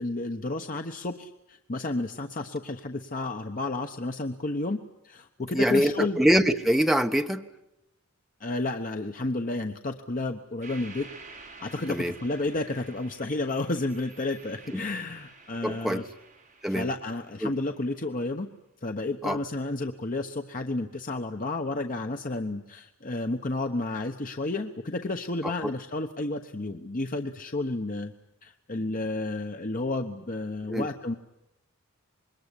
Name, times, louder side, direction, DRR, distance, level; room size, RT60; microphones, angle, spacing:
voice 1, 0.0-6.2 8.4-11.1 11.6-16.1 16.7-18.5 18.8-28.1 28.4-31.1, left 2 dB, 40° left, 5 dB, 1.1 m, -31 dB
voice 2, 5.5-7.4 11.9-12.1 14.7-14.8 15.6-16.0 16.6-16.9 17.4-17.5 19.2-19.4 25.4-25.5 30.7-30.9, equal, ahead, 5 dB, 1.2 m, -24 dB
sound 1, 10.6-17.9, right 4 dB, 35° right, 6.3 m, -50 dB
26.0 x 21.5 x 10.0 m, 0.85 s
head